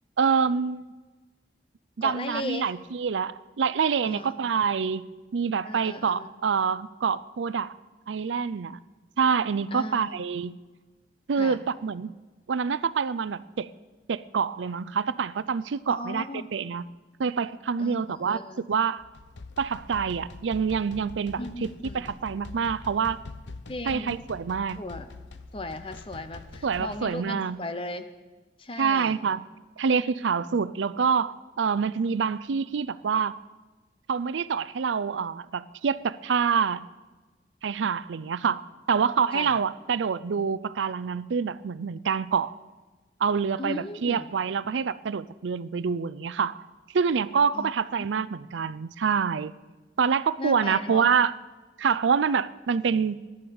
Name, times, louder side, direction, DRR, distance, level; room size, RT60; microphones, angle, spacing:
voice 1, 0.2-0.9 2.0-5.0 5.3-7.7 8.1-8.8 9.2-10.6 11.3-12.1 12.5-13.7 14.1-16.2 16.5-16.8 17.2-18.4 18.7-19.0 19.6-21.7 21.9-23.2 23.9-24.8 26.6-27.6 28.8-29.4 29.8-33.3 34.1-36.9 37.6-42.5 43.2-46.6 46.9-49.5 50.0-51.3 51.8-53.3, right 6 dB, 90° right, 17 dB, 0.5 m, -26 dB
voice 2, 2.0-2.7 4.0-4.5 5.6-6.3 9.7-10.2 11.4-11.6 15.9-16.5 17.8-18.6 21.4-22.1 23.7-24.2 24.8-25.1 25.5-28.1 28.6-29.1 39.3-39.6 43.6-44.3 47.5-47.7 48.0-48.1 50.4-51.1, left 2 dB, 30° left, 9 dB, 0.8 m, -36 dB
sound 1, 19.0-27.2, left 3 dB, 80° left, 0.8 m, -44 dB
14.5 x 11.0 x 7.0 m, 1.3 s
head